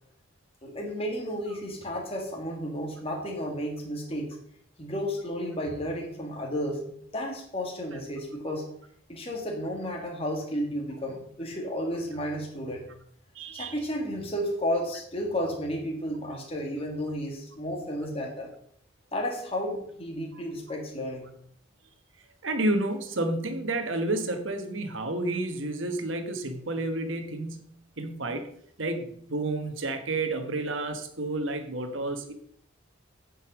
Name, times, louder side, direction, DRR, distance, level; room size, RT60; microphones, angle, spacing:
voice 1, 0.6-4.4 4.8-8.7 9.1-12.9 13.5-18.5 19.1-21.3, equal, 30° left, 0 dB, 1.9 m, -32 dB
voice 2, 13.3-13.8 22.4-27.7 28.0-28.5 28.8-32.3, right 2 dB, 70° right, 7 dB, 1.4 m, -30 dB
9.2 x 5.5 x 6.2 m, 0.65 s
head